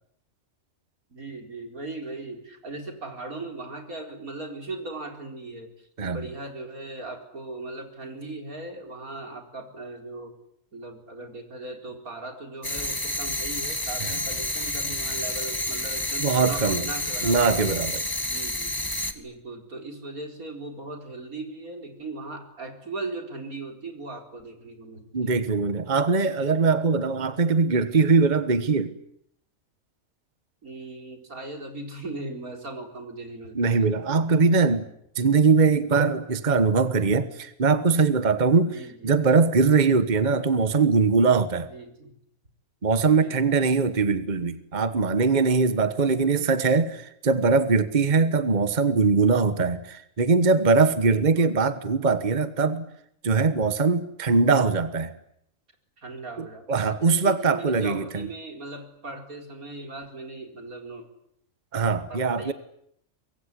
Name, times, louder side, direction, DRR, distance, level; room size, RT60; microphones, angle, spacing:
voice 1, 1.1-10.3 10.7-17.5 18.2-18.7 19.1-25.4 30.6-33.9 38.6-39.2 41.7-42.1 42.9-43.4 45.8-46.3 50.9-51.6 56.0-61.0 62.1-62.5, right 2 dB, 85° right, 4.9 m, -38 dB
sound 1, 12.6-19.1, left 1 dB, 15° left, 1.9 m, -29 dB
voice 2, 16.2-16.8 17.2-18.1 25.1-28.9 33.5-34.9 35.1-38.8 39.0-41.7 42.8-52.9 53.2-55.1 56.4-58.3 61.7-62.5, right 4 dB, 35° right, 1.4 m, -21 dB
24.5 x 22.5 x 9.9 m
omnidirectional pair, 1.5 m